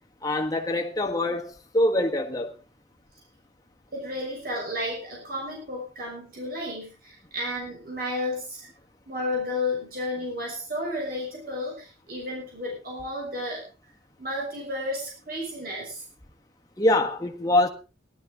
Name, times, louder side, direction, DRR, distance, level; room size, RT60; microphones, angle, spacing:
voice 1, 0.2-2.5 16.8-17.7, left 1 dB, 20° left, 1.5 m, -24 dB
voice 2, 3.9-8.7 9.1-13.6 14.2-16.0, left 1 dB, 50° right, 6.5 m, -32 dB
18.0 x 12.0 x 3.8 m
head